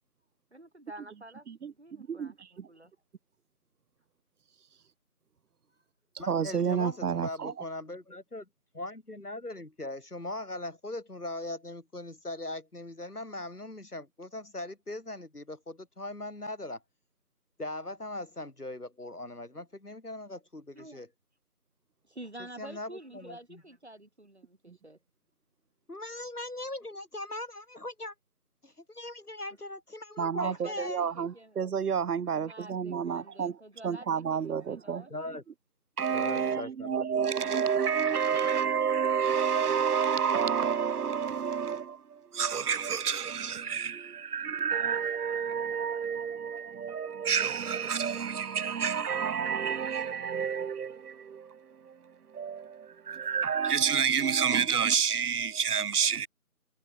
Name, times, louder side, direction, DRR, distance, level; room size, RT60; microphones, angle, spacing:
voice 1, 0.5-2.9 20.7-21.0 22.1-25.0 30.4-31.6 32.3-34.4 34.7-35.4 38.4-38.9, right 1 dB, 45° right, 2.8 m, -48 dB
voice 2, 1.5-2.7 6.3-7.5 24.7-24.8 30.2-33.6 33.8-35.1 36.0-56.3, right 7 dB, 85° right, 0.6 m, -30 dB
voice 3, 6.2-8.5 8.7-16.8 17.6-21.1 22.6-23.6 25.9-28.1 28.6-31.0 35.1-35.4 36.1-37.5, left 2 dB, 90° left, 3.0 m, -40 dB
figure-of-eight pair, 175°, 44 cm